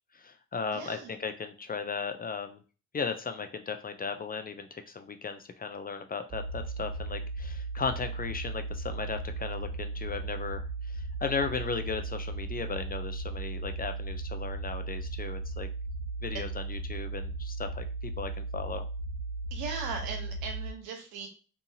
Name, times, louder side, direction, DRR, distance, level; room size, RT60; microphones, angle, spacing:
voice 1, 0.1-2.6 2.9-15.7 16.2-18.8, left 5 dB, 25° left, 8 dB, 0.3 m, -36 dB
voice 2, 0.7-1.1 19.5-21.3, right 4 dB, 80° right, 2 dB, 0.9 m, -38 dB
sound 1, 6.3-20.7, right 3 dB, 35° right, 1.1 m, -36 dB
2.7 x 2.4 x 2.7 m, 0.36 s
supercardioid pair, 55°, 37 cm